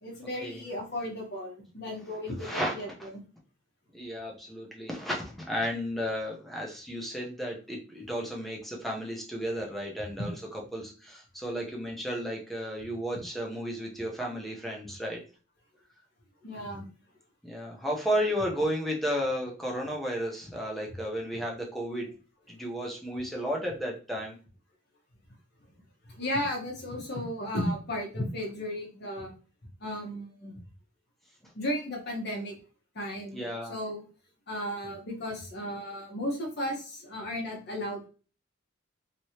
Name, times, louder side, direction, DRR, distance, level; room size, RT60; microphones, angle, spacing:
voice 1, 0.0-2.9 16.4-16.9 26.1-29.3 29.8-30.6 31.5-32.6 32.9-33.4 33.7-34.0 34.5-38.1, equal, 55° left, 0 dB, 1.2 m, -34 dB
voice 2, 2.4-2.7 3.0-3.1 3.9-10.3 10.7-15.2 17.4-22.1 22.5-24.4 33.3-33.7, equal, ahead, -2 dB, 0.8 m, -33 dB
3.1 x 3.0 x 2.8 m, 0.37 s
head